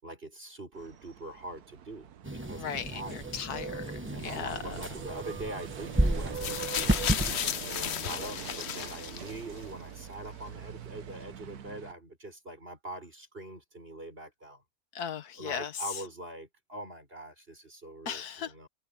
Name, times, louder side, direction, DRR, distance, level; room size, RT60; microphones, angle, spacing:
voice 1, 0.0-3.3 4.1-7.0 7.6-14.6 15.4-18.7, right 1 dB, 40° right, 6.5 m, -43 dB
sound 1, 0.7-11.9, right 8 dB, 80° right, 1.4 m, -43 dB
sound 2, 2.2-7.3, right 1 dB, 10° right, 1.0 m, -32 dB
voice 2, 2.6-4.8 7.8-8.1 15.0-15.7 18.1-18.5, left 7 dB, 90° left, 1.7 m, -37 dB
sound 3, 6.3-9.6 10.5-10.6, left 9 dB, 55° left, 0.9 m, -34 dB
omnidirectional pair, 1.6 m